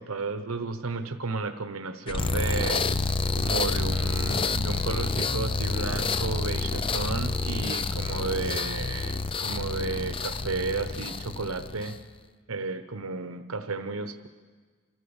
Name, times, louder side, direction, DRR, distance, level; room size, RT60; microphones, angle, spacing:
voice 1, 0.0-2.9 3.3-12.0 12.5-14.3, right 3 dB, 90° right, 8 dB, 1.0 m, -33 dB
sound 1, 2.1-12.1, left 3 dB, 25° left, 0.5 m, -28 dB
26.5 x 14.0 x 7.2 m, 1.5 s
head